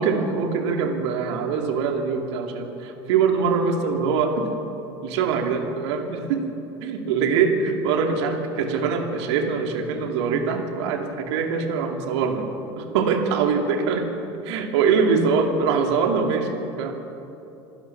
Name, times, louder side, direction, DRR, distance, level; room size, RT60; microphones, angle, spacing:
voice 1, 0.0-4.5 5.0-6.4 6.8-12.5 12.8-14.0 14.4-16.9, right 5 dB, 75° right, 4 dB, 2.7 m, -23 dB
27.5 x 16.0 x 5.9 m, 2.9 s
hypercardioid pair, 85°, 15 cm